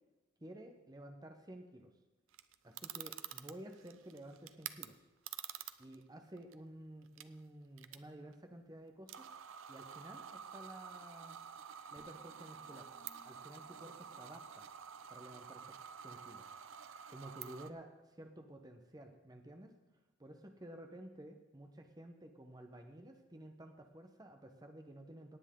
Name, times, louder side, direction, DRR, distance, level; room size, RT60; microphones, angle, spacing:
voice 1, 0.4-1.9 2.6-5.0 5.8-9.3 9.7-11.4 11.9-12.9 13.2-14.7 15.1-16.5 17.1-19.7 20.2-25.4, right 1 dB, 20° right, 4 dB, 1.0 m, -53 dB
sound 1, 2.3-4.9 5.3-6.0 6.4-6.5 7.1-7.2 7.8-8.0 8.3-8.4 9.1-17.7, right 9 dB, 75° right, 0.6 m, -49 dB
sound 2, 12.0-15.3, equal, 25° left, 1.1 m, -70 dB
17.5 x 9.1 x 3.8 m, 1.1 s
head